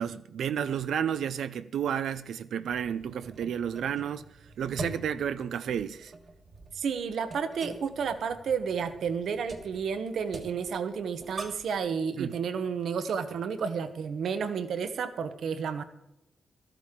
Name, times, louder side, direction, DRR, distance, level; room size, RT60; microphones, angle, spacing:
voice 1, 0.0-6.1 12.2-12.3, right 8 dB, 90° right, 0.4 m, -31 dB
sound 1, 2.7-11.8, right 3 dB, 40° right, 1.4 m, -44 dB
voice 2, 6.7-15.8, right 6 dB, 70° right, 0.9 m, -31 dB
13.5 x 13.5 x 3.7 m
wide cardioid pair, 150°, 0 cm